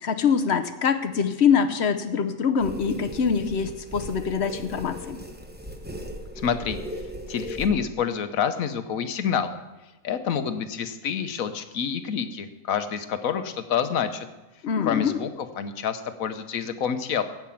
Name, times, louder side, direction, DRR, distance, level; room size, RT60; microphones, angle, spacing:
voice 1, 0.0-5.2 14.6-15.2, left 6 dB, 55° left, 10 dB, 0.9 m, -24 dB
sound 1, 2.6-7.7, equal, 10° right, 0.9 m, -38 dB
voice 2, 6.3-9.6 10.0-14.3 14.8-17.2, left 7 dB, 75° left, 10 dB, 1.3 m, -28 dB
16.0 x 6.0 x 7.1 m, 1.1 s
omnidirectional pair, 1.5 m